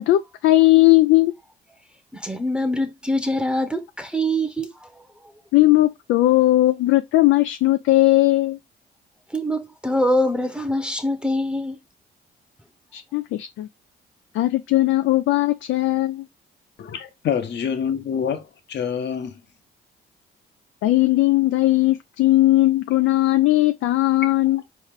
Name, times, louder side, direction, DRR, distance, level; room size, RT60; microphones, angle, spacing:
voice 1, 0.0-1.3 5.5-8.6 12.9-13.7 14.3-16.2 20.8-24.6, left 17 dB, 80° left, 0.4 m, -18 dB
voice 2, 2.1-5.3 9.3-11.8, equal, 5° right, 0.8 m, -24 dB
voice 3, 16.8-19.3, left 7 dB, 60° left, 1.0 m, -26 dB
4.4 x 3.1 x 3.6 m
cardioid pair, 90°, 20 cm